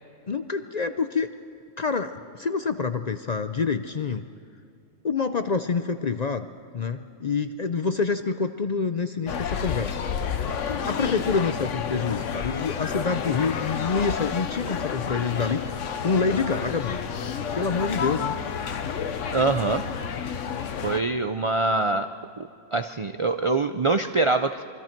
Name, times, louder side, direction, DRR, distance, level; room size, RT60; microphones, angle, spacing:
voice 1, 0.3-1.3 1.8-4.2 5.0-6.5 6.7-10.0 10.7-17.0 17.5-18.4, left 5 dB, 45° left, 9 dB, 0.5 m, -27 dB
sound 1, 9.3-21.0, left 7 dB, 70° left, 1.2 m, -30 dB
voice 2, 19.3-19.9 20.8-22.1 22.4-24.6, right 3 dB, 55° right, 8 dB, 0.3 m, -24 dB
27.5 x 23.5 x 4.5 m, 2.3 s
omnidirectional pair, 1.3 m